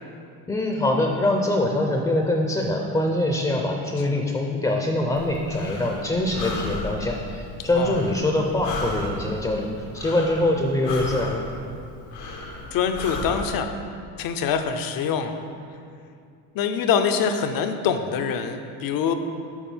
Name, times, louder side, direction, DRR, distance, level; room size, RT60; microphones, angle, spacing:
voice 1, 0.5-9.7 9.9-11.4, left 1 dB, 10° left, 1 dB, 0.5 m, -24 dB
Breathing, 5.1-13.5, left 2 dB, 90° left, 1.3 m, -35 dB
voice 2, 12.7-13.8 14.2-15.3 16.5-19.1, left 7 dB, 55° left, 8 dB, 0.7 m, -24 dB
7.3 x 4.8 x 5.5 m, 2.4 s
cardioid pair, 125°, 42 cm